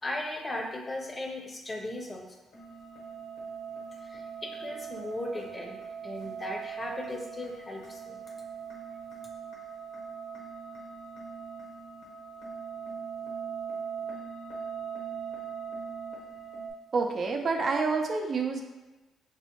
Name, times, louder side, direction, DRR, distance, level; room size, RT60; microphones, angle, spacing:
voice 1, 0.0-2.3 4.0-5.8 6.0-8.2, left 1 dB, 25° left, 2 dB, 0.6 m, -37 dB
sound 1, 2.5-16.7, right 6 dB, 90° left, 1.1 m, -40 dB
voice 2, 16.9-18.6, right 4 dB, 45° right, 2 dB, 0.4 m, -28 dB
5.3 x 2.0 x 2.9 m, 1.1 s
cardioid pair, 90°, 0 cm